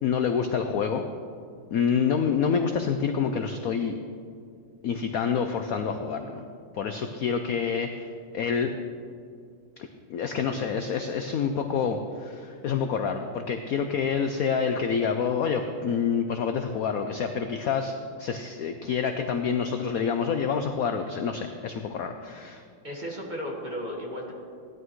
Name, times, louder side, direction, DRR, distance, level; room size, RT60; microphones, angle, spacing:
voice 1, 0.0-1.0 1.7-3.9 4.8-6.4 6.7-8.7 10.1-17.9 18.2-22.6, left 6 dB, 70° left, 6 dB, 0.8 m, -27 dB
voice 2, 22.8-24.3, equal, 25° right, -2 dB, 1.6 m, -34 dB
16.5 x 11.0 x 3.1 m, 2.2 s
omnidirectional pair, 2.1 m